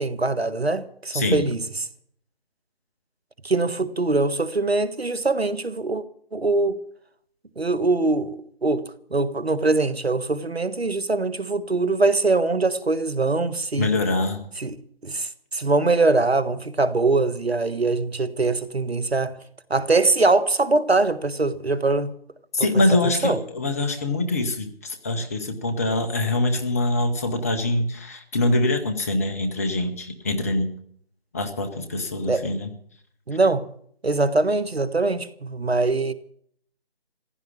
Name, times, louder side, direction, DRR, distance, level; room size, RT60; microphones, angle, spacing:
voice 1, 0.0-1.6 3.4-6.0 6.3-6.8 7.6-8.8 9.1-13.9 14.6-14.7 15.0-19.4 19.7-22.1 22.6-22.7 23.2-23.4 32.3-32.5 33.3-33.7 34.0-36.1, right 3 dB, 85° right, 1.6 m, -22 dB
voice 2, 1.1-1.4 13.8-14.4 22.5-30.7 31.3-32.7, left 2 dB, 15° left, 0.9 m, -24 dB
15.5 x 10.5 x 8.7 m
figure-of-eight pair, 155°, 30 cm